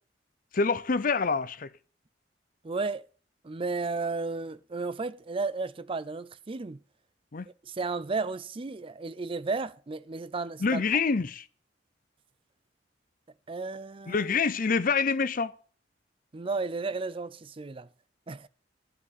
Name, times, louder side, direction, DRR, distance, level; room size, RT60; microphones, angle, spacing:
voice 1, 0.5-1.7 7.3-7.5 10.6-11.5 14.1-15.5, left 5 dB, 50° left, 0.6 m, -26 dB
voice 2, 2.6-3.0 3.4-6.8 7.6-10.8 13.5-14.2 16.3-17.9 18.3-18.5, right 3 dB, 30° right, 0.5 m, -33 dB
13.0 x 5.0 x 8.3 m
head